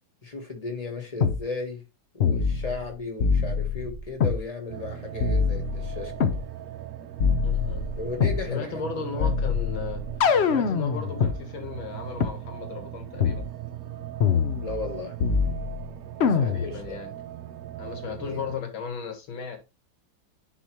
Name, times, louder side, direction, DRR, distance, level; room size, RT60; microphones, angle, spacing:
voice 1, 0.2-1.8 2.1-6.3 8.0-9.3 14.6-15.1 16.3-17.0 18.0-18.4, left 3 dB, 20° left, 1.3 m, -35 dB
sound 1, 1.2-1.4 2.2-2.9 3.2-4.4 5.2-6.4 7.2-8.4 9.2-11.4 12.2-12.3 13.2-13.4 14.2-14.9 15.2-15.8 16.2-16.8, left 6 dB, 70° left, 0.6 m, -24 dB
sound 2, 4.7-18.6, right 12 dB, 65° right, 1.0 m, -39 dB
voice 2, 7.4-7.9 8.5-10.0 10.4-13.5 16.3-17.1 17.8-19.6, left 5 dB, 90° left, 2.2 m, -36 dB
10.0 x 4.0 x 3.0 m
omnidirectional pair, 2.1 m